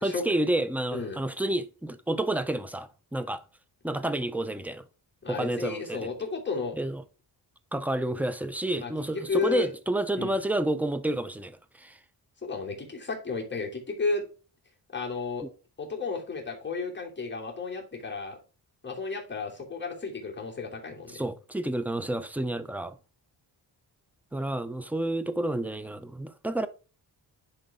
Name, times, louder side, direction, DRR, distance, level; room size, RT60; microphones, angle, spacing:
voice 1, 0.0-3.4 3.8-4.8 5.3-6.1 6.8-7.0 7.7-12.0 21.1-23.0 24.3-26.7, right 1 dB, 5° right, 0.6 m, -30 dB
voice 2, 5.2-6.7 8.8-9.7 10.2-10.3 12.4-14.2 14.9-15.4 15.8-18.4 18.8-21.2, left 4 dB, 25° left, 2.7 m, -33 dB
10.5 x 3.9 x 3.6 m
wide cardioid pair, 115°, 42 cm